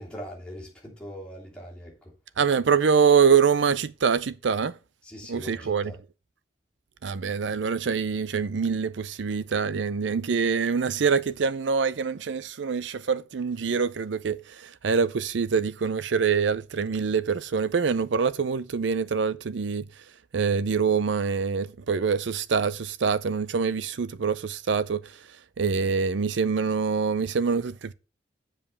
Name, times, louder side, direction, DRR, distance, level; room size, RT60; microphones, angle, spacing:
voice 1, 0.0-2.1 5.0-6.0, equal, 5° left, 2.9 m, -41 dB
voice 2, 2.4-4.8 5.3-5.9 7.0-19.9 20.3-25.2 25.6-27.9, right 6 dB, 80° right, 0.5 m, -25 dB
7.5 x 5.0 x 6.8 m
head